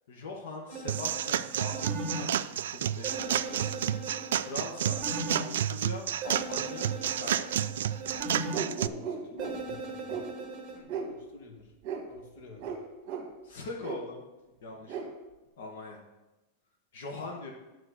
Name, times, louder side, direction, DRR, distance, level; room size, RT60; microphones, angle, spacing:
voice 1, 0.1-3.7 4.4-5.0 5.3-7.5 13.4-14.2 14.6-15.0 15.6-16.0 16.9-17.5, left 3 dB, 75° left, 0 dB, 1.4 m, -42 dB
sound 1, 0.7-2.2 3.0-5.4 6.2-8.6 9.4-10.8, right 2 dB, 15° right, 1.9 m, -38 dB
sound 2, 0.9-8.9, right 10 dB, 85° right, 0.3 m, -31 dB
sound 3, 8.5-9.5 10.1-10.3 10.9-11.1 11.8-12.0 12.6-12.8 13.1-13.3 13.8-14.0 14.9-15.1, right 6 dB, 35° right, 1.5 m, -35 dB
voice 2, 8.9-10.2 10.7-11.7 12.0-12.7, left 4 dB, 45° left, 1 dB, 1.8 m, -50 dB
10.0 x 4.4 x 6.3 m, 1.1 s
supercardioid pair, 175°, 0 cm